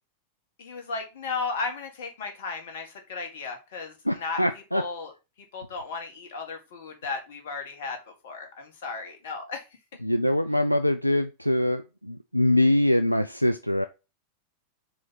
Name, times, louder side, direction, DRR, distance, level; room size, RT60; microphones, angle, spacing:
voice 1, 0.6-5.1 5.5-8.0 8.2-9.6, left 4 dB, 55° left, 4 dB, 1.8 m, -35 dB
voice 2, 4.1-4.8 10.0-13.8, left 1 dB, 90° left, 9 dB, 0.3 m, -23 dB
4.8 x 4.0 x 5.6 m, 0.28 s
figure-of-eight pair, 90°, 0 cm